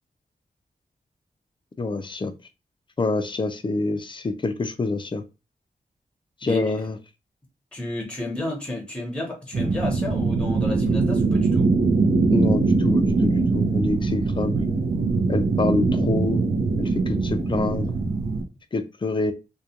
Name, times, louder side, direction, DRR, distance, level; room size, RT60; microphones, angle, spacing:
voice 1, 1.8-2.3 3.0-5.2 6.4-7.0 12.3-14.6 15.3-16.4 16.8-17.9 18.7-19.3, left 3 dB, 30° left, 0.4 m, -26 dB
voice 2, 7.7-11.7, left 1 dB, 5° left, 0.9 m, -31 dB
sound 1, 9.5-18.4, right 3 dB, 75° right, 0.5 m, -22 dB
2.3 x 2.2 x 2.8 m
wide cardioid pair, 90°, 16 cm